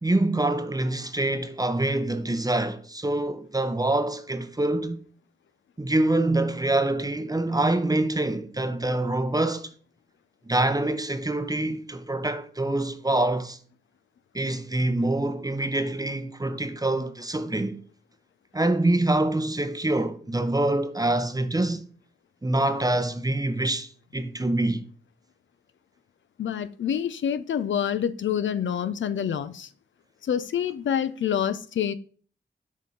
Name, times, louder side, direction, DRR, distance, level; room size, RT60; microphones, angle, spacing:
voice 1, 0.0-5.0 5.8-9.7 10.5-13.6 14.3-17.8 18.5-21.9 22.4-24.8, right 2 dB, 20° right, 0.7 m, -25 dB
voice 2, 26.4-29.7 30.2-31.9, left 9 dB, 80° left, 0.4 m, -27 dB
6.3 x 3.6 x 5.6 m
cardioid pair, 65°, 19 cm